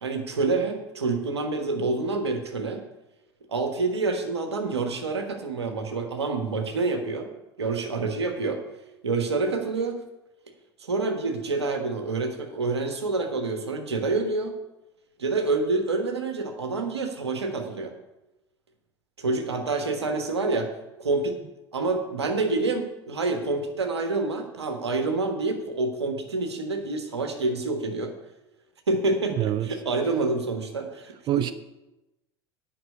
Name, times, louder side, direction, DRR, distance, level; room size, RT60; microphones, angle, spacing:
voice 1, 0.0-2.8 3.5-7.3 7.6-8.6 9.0-10.0 10.8-14.6 15.2-17.9 19.2-20.7 21.0-21.4 21.7-28.1 28.9-31.5, right 3 dB, 80° right, 1.4 m, -27 dB
voice 2, 29.3-29.7 31.3-31.5, right 12 dB, 35° right, 0.5 m, -25 dB
9.4 x 5.9 x 8.3 m
figure-of-eight pair, 70°, 14 cm